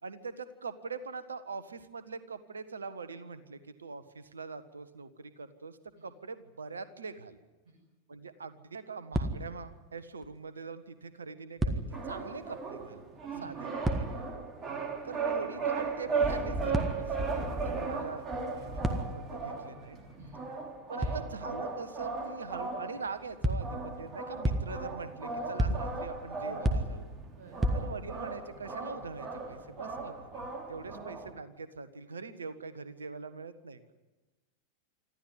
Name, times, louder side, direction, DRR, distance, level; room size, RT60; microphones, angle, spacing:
voice 1, 0.0-7.4 8.1-13.6 14.0-14.3 15.0-20.0 20.9-27.1 27.7-33.9, right 4 dB, 75° right, 13 dB, 1.4 m, -43 dB
sound 1, 9.1-9.8 10.2-10.3 11.6-12.2 13.8-14.5 16.7-17.3 18.8-19.4 21.0-21.5 23.4-23.9 24.4-25.0 25.6-26.2 26.6-27.3 27.6-28.2, right 1 dB, 10° right, 1.9 m, -32 dB
sound 2, 11.9-31.3, right 4 dB, 25° right, 3.0 m, -37 dB
voice 2, 14.6-14.9 20.2-20.4 20.9-21.2 27.3-27.6 30.8-31.0, right 2 dB, 45° right, -1 dB, 6.3 m, -52 dB
25.5 x 14.5 x 9.8 m, 1.2 s
figure-of-eight pair, 90°, 0 cm